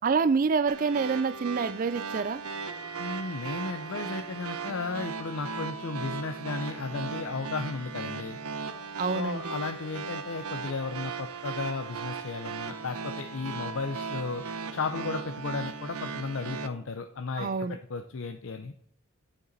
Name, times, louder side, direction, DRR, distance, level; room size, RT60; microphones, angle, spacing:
voice 1, 0.0-2.4 9.0-9.5 17.4-17.8, right 5 dB, 35° right, 0.3 m, -27 dB
sound 1, 0.7-16.7, right 5 dB, 80° right, 0.8 m, -37 dB
sound 2, 2.4-12.0, right 1 dB, 25° left, 1.0 m, -50 dB
voice 2, 3.0-8.4 9.1-14.4 14.7-18.7, left 4 dB, 60° left, 0.6 m, -34 dB
9.7 x 7.9 x 4.0 m
head